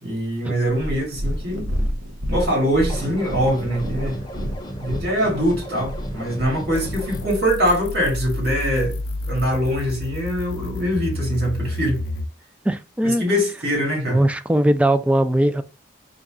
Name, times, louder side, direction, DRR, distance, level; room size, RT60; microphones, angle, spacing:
voice 1, 0.0-1.7 2.3-4.5 4.8-9.0 9.3-12.1 13.0-14.2, equal, 60° right, 2.2 m, -23 dB
Purr, 0.7-7.0 7.8-7.9, equal, 90° right, 0.8 m, -29 dB
sound 1, 2.9-7.3, equal, 25° left, 0.7 m, -34 dB
sound 2, 6.7-12.3, left 2 dB, 80° left, 0.4 m, -30 dB
voice 2, 12.6-13.2 14.1-15.6, right 1 dB, 5° right, 0.3 m, -19 dB
4.0 x 2.3 x 3.6 m
head